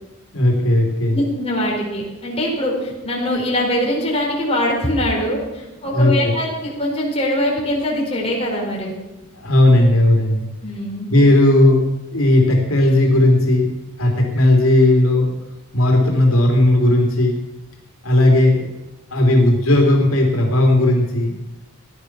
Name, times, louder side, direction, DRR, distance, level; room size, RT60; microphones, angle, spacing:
voice 1, 0.3-1.2 5.9-6.3 9.3-10.5 11.1-11.8 12.1-15.3 15.7-17.4 18.0-18.7 19.1-21.3, left 1 dB, 90° left, 1 dB, 2.8 m, -15 dB
voice 2, 1.1-9.0 10.6-11.1, left 1 dB, 30° left, -3 dB, 4.3 m, -22 dB
16.0 x 11.0 x 6.0 m, 1.0 s
head